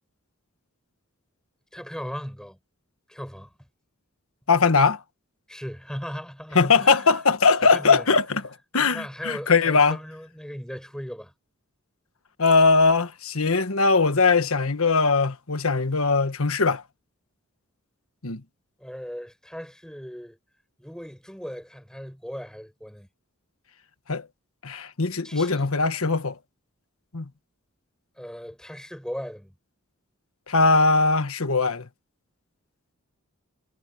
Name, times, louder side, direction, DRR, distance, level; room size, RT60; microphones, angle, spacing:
voice 1, 1.7-2.6 3.1-3.5 5.5-7.1 7.7-8.1 8.8-11.3 18.8-20.4 20.8-23.1 25.2-25.6 28.2-29.5, equal, 5° left, 6.4 m, -37 dB
voice 2, 4.5-5.0 6.5-8.4 8.7-10.0 12.4-16.8 18.2-18.4 24.1-24.3 24.6-26.4 27.1-27.2 30.5-31.8, left 4 dB, 75° left, 1.5 m, -20 dB
head